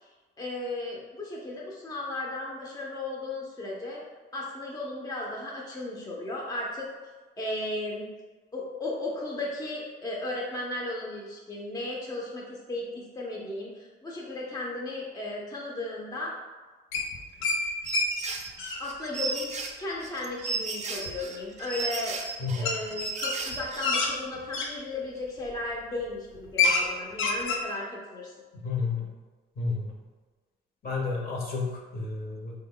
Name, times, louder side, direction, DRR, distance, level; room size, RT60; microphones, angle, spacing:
voice 1, 0.4-4.0 4.3-6.9 7.4-8.1 8.5-16.3 17.4-17.6 18.8-19.5 19.8-22.2 22.5-28.3, left 2 dB, 20° left, -3 dB, 0.6 m, -35 dB
sound 1, 16.9-17.6 17.9-18.1 18.4-18.8 21.1-21.2 22.6-22.8 23.2-24.7 25.4-25.6 26.0-26.1 26.3-26.9 27.1-27.6, left 4 dB, 90° left, 0.6 m, -27 dB
sound 2, 17.8-23.9, right 4 dB, 35° right, 0.5 m, -34 dB
voice 2, 22.4-22.7 28.6-29.1 29.6-29.9 30.8-32.5, left 4 dB, 50° left, -1 dB, 0.9 m, -31 dB
3.5 x 2.2 x 3.7 m, 1.3 s
cardioid pair, 90°, 20 cm